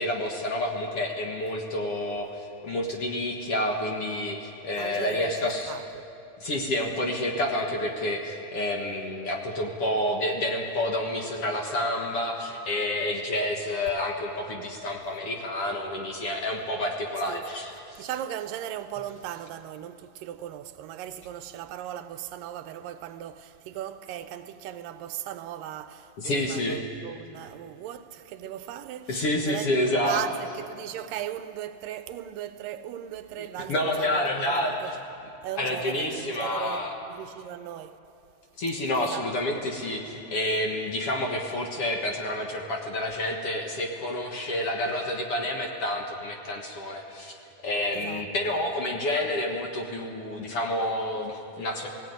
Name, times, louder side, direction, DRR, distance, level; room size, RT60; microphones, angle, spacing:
voice 1, 0.0-5.7 6.4-18.1 26.2-26.9 29.1-30.2 33.4-35.0 35.6-37.0 38.6-47.4 47.6-51.9, left 1 dB, 50° left, 2.0 m, -29 dB
voice 2, 4.8-5.3 5.7-6.0 17.2-17.4 18.0-34.2 34.5-34.9 35.4-38.0 38.9-39.3 47.9-48.2 48.5-48.7, right 11 dB, 80° right, 2.3 m, -37 dB
17.5 x 17.0 x 9.4 m
omnidirectional pair, 4.0 m